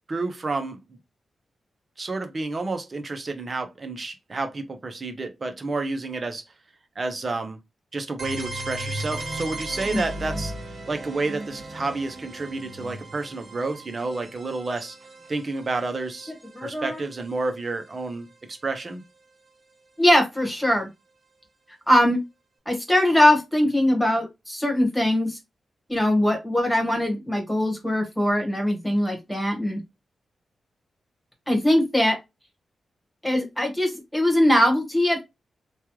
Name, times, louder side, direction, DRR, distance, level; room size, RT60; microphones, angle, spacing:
voice 1, 0.1-1.0 2.0-6.4 7.0-7.6 7.9-10.5 10.9-15.0 15.3-16.3 16.6-19.0, right 3 dB, 40° right, 0.7 m, -30 dB
sound 1, 8.2-17.9, right 1 dB, 60° right, 1.3 m, -37 dB
voice 2, 16.5-17.0 20.0-20.9 21.9-22.2 22.7-25.4 25.9-29.8 31.5-32.2 33.2-35.3, left 1 dB, 5° left, 1.3 m, -21 dB
3.1 x 2.3 x 3.0 m
cardioid pair, 85°, 0 cm